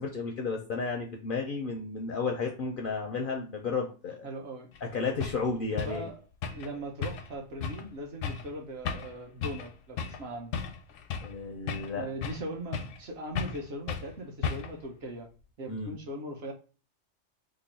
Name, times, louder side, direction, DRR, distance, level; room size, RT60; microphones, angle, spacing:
voice 1, 0.0-4.3 4.8-6.1 11.2-12.1 15.7-15.9, left 4 dB, 60° left, 1 dB, 0.5 m, -33 dB
voice 2, 4.2-4.7 5.7-6.2 6.5-10.6 11.9-15.3 15.6-16.5, right 1 dB, 60° right, 1 dB, 0.9 m, -39 dB
sound 1, 4.8-4.9 5.2-5.4 5.8-6.0 6.4-6.7 7.0-7.3 7.6-7.8 8.2-8.5 8.9-9.1 9.4-9.7 10.0-10.2 10.5-11.4 11.7-12.5 12.7-13.0 13.4-13.6 13.9-14.1 14.4-14.8, left 6 dB, 85° left, 0.9 m, -34 dB
3.0 x 2.3 x 3.9 m, 0.36 s
omnidirectional pair, 1.3 m